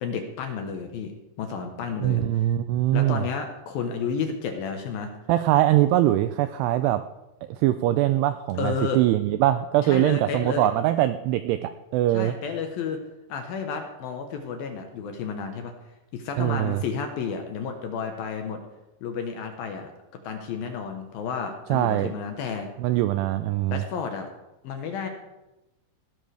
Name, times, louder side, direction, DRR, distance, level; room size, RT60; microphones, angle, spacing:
voice 1, 0.0-1.1 1.4-2.2 2.9-5.1 8.6-9.0 9.8-10.7 12.1-13.0 13.3-15.7 16.1-18.6 19.0-19.9 20.2-22.7 23.7-24.3 24.6-25.1, left 6 dB, 70° left, 5 dB, 2.4 m, -31 dB
voice 2, 2.0-3.2 5.3-7.0 7.5-12.3 16.4-16.8 21.7-22.1 22.8-23.8, right 14 dB, 90° right, 11 dB, 2.3 m, -22 dB
18.5 x 12.5 x 3.4 m, 1.0 s
omnidirectional pair, 5.3 m